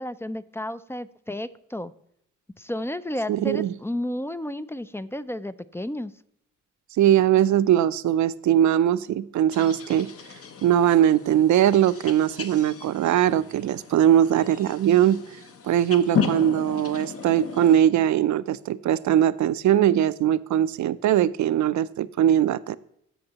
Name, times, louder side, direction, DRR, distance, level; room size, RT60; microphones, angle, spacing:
voice 1, 0.0-1.9 2.6-6.1, left 1 dB, 10° left, 14 dB, 0.3 m, -32 dB
voice 2, 3.3-3.7 7.0-10.1 10.6-15.2 15.6-22.7, right 11 dB, 65° right, 16 dB, 0.5 m, -21 dB
sound 1, 9.5-17.8, left 6 dB, 45° left, 0.8 m, -34 dB
14.0 x 5.3 x 2.9 m, 0.74 s
cardioid pair, 100°, 31 cm